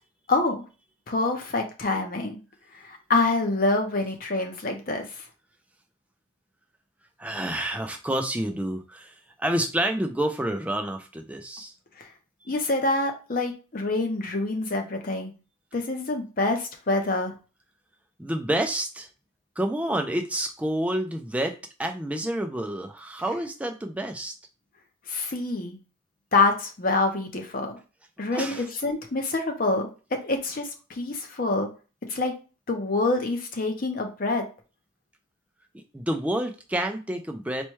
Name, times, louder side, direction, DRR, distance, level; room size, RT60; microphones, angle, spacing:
voice 1, 0.3-0.6 1.1-2.4 2.8-5.1 12.0-12.1 12.5-15.3 15.7-17.3 25.1-25.8 26.3-27.8 28.2-29.9 30.2-31.7 32.1-32.3 32.7-34.4, left 3 dB, 45° left, 3 dB, 0.7 m, -26 dB
voice 2, 7.2-11.7 12.4-12.5 18.2-19.1 19.6-24.3 28.3-28.7 35.9-37.6, right 1 dB, 5° right, 5 dB, 0.3 m, -29 dB
4.3 x 2.2 x 3.0 m, 0.33 s
head